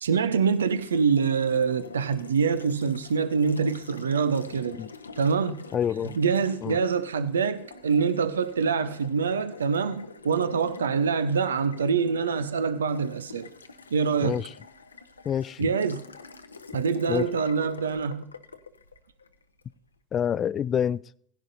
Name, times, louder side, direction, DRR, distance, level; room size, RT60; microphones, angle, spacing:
voice 1, 0.0-4.8 5.2-5.6 6.2-13.5 13.9-14.4 15.6-16.0 16.7-18.3, right 5 dB, 80° right, 0.7 m, -25 dB
Water tap faucet, 0.5-19.7, left 4 dB, 90° left, 0.7 m, -45 dB
voice 2, 5.7-6.2 6.6-6.8 14.2-14.5 15.2-15.7 17.1-17.3 20.1-21.0, left 8 dB, 35° left, 0.4 m, -27 dB
16.5 x 11.0 x 2.7 m
figure-of-eight pair, 75°, 0 cm